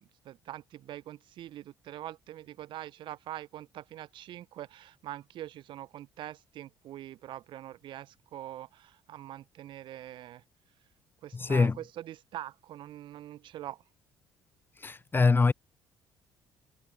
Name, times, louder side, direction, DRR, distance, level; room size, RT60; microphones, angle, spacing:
voice 1, 0.2-10.4 11.2-13.8, right 13 dB, 50° right, 1.1 m, -44 dB
voice 2, 11.3-11.8 14.8-15.5, left 4 dB, 20° left, 0.7 m, -24 dB
figure-of-eight pair, 50°, 10 cm